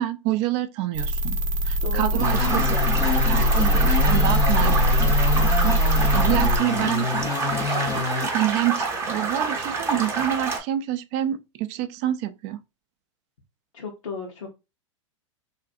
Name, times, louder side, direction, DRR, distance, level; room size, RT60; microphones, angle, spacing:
voice 1, 0.0-1.4 1.7-2.8 3.3-4.8 5.2-7.1 8.3-12.6, right 13 dB, 40° right, 0.4 m, -27 dB
sound 1, 0.9-6.6, equal, 90° right, 0.6 m, -21 dB
voice 2, 1.8-3.2 4.6-4.8 13.7-14.5, left 4 dB, 85° left, 0.8 m, -35 dB
sound 2, 2.2-8.3, left 3 dB, 20° left, 0.5 m, -27 dB
sound 3, 2.2-10.6, right 4 dB, 15° right, 0.7 m, -28 dB
2.6 x 2.5 x 2.4 m
hypercardioid pair, 120°, 16 cm